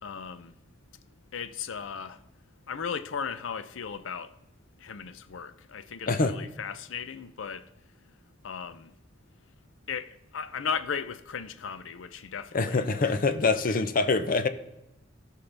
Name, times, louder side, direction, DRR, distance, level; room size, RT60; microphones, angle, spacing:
voice 1, 0.0-0.5 1.3-2.2 2.7-4.4 4.8-7.7 8.4-8.9 9.9-13.2 13.7-13.8, left 6 dB, 85° left, 0.5 m, -36 dB
voice 2, 12.5-14.5, left 3 dB, 45° left, 0.6 m, -25 dB
16.5 x 5.6 x 3.4 m
head